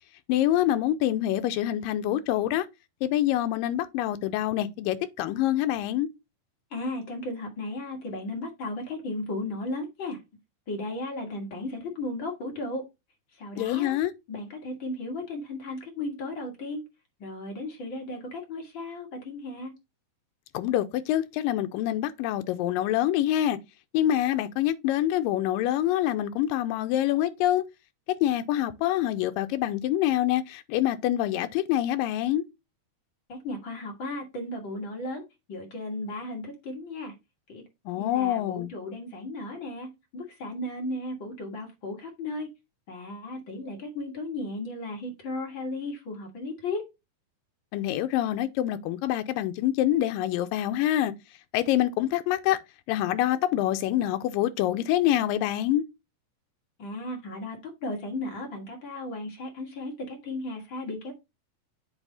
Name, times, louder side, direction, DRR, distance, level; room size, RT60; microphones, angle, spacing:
voice 1, 0.3-2.7 3.0-6.1 13.6-14.1 20.5-23.6 23.9-27.6 28.1-32.4 37.9-38.7 47.7-51.1 51.5-52.6 52.9-55.8, left 13 dB, 85° left, 2.2 m, -26 dB
voice 2, 6.7-10.2 10.7-12.8 13.4-14.0 14.3-16.8 17.2-19.7 33.3-35.2 35.5-37.1 37.5-37.7 38.0-42.5 42.9-46.9 56.8-61.1, left 2 dB, 45° left, 1.8 m, -35 dB
8.2 x 3.6 x 4.0 m
omnidirectional pair, 4.1 m